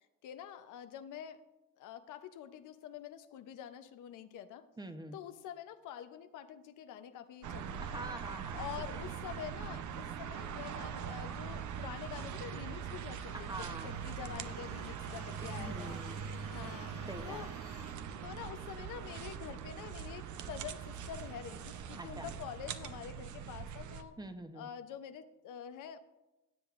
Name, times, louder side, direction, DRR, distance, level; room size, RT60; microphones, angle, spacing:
voice 1, 0.2-1.4 1.8-4.7 5.1-8.0 8.5-17.5 18.2-24.2 24.5-26.0, left 10 dB, 85° left, 10 dB, 0.7 m, -47 dB
voice 2, 4.8-5.2 7.8-8.7 13.3-14.0 15.4-16.2 17.1-17.5 22.0-22.3 24.2-24.7, right 1 dB, 15° right, 8 dB, 0.8 m, -45 dB
sound 1, 7.4-24.0, right 7 dB, 75° right, 0.7 m, -42 dB
sound 2, 13.0-18.0, left 7 dB, 50° left, 1.2 m, -61 dB
16.5 x 7.8 x 2.5 m, 1.0 s
cardioid pair, 90°, 30 cm